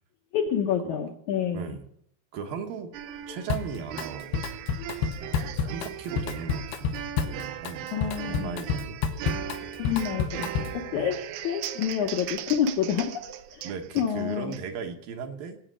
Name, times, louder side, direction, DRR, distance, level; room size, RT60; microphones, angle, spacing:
voice 1, 0.3-1.8 3.3-3.4 4.8-4.9 7.9-8.5 9.8-13.1 13.5-13.7 14.0-14.6, left 8 dB, 70° left, 2 dB, 1.9 m, -28 dB
voice 2, 1.5-1.8 2.3-2.9 3.3-4.3 5.0-7.9 8.2-9.0 10.9-11.1 13.6-15.6, right 6 dB, 70° right, 4 dB, 2.8 m, -37 dB
sound 1, 2.9-14.6, right 11 dB, 90° right, 2.9 m, -38 dB
Drum kit, 3.5-4.1 4.3-10.9, left 6 dB, 85° left, 2.9 m, -30 dB
18.0 x 8.9 x 6.3 m, 0.72 s
omnidirectional pair, 4.5 m